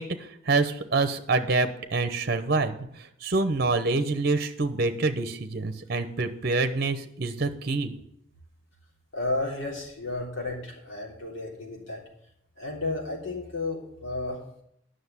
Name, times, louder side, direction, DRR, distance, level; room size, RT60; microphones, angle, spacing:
voice 1, 0.0-7.9, right 3 dB, 50° right, 9 dB, 0.8 m, -26 dB
voice 2, 9.1-12.0 12.6-14.4, left 2 dB, 75° left, -1 dB, 3.4 m, -32 dB
9.6 x 6.4 x 8.1 m, 0.73 s
head